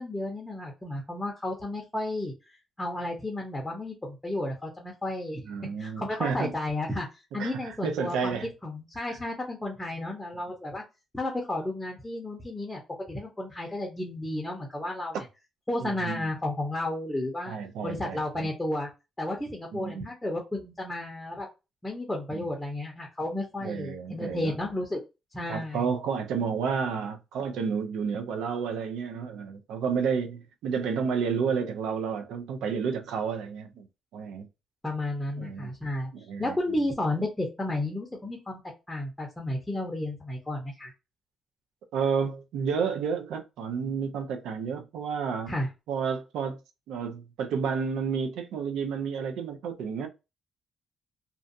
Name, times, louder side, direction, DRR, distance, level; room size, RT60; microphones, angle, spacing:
voice 1, 0.0-2.3 2.8-5.4 5.8-7.1 7.3-8.4 8.6-10.8 11.1-12.8 13.1-15.2 15.7-17.5 17.8-18.9 19.2-21.5 21.8-25.0 25.3-25.9 34.8-36.1 36.4-38.6 38.9-40.9 45.5-45.7, left 1 dB, 10° left, 0.7 m, -32 dB
voice 2, 5.4-6.5 7.4-8.5 9.0-9.1 15.8-16.3 17.5-18.5 19.7-20.1 22.3-22.5 23.6-24.5 25.5-33.9 34.1-34.5 35.4-35.7 36.1-36.6 41.9-45.5 45.9-46.6 46.9-50.1, right 6 dB, 85° right, 0.4 m, -31 dB
2.5 x 2.2 x 2.5 m
cardioid pair, 90°, 0 cm